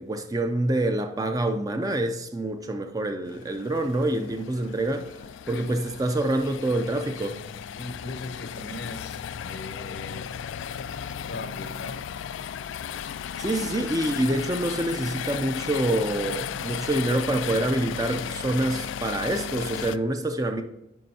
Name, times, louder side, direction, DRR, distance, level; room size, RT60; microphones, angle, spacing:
voice 1, 0.0-5.1 5.5-7.4 13.4-20.6, right 1 dB, 20° right, 0.4 m, -26 dB
sound 1, 3.3-20.0, left 8 dB, 80° left, 0.3 m, -35 dB
voice 2, 7.7-10.2 11.3-12.0, left 2 dB, 60° left, 0.7 m, -39 dB
9.3 x 5.4 x 2.8 m
head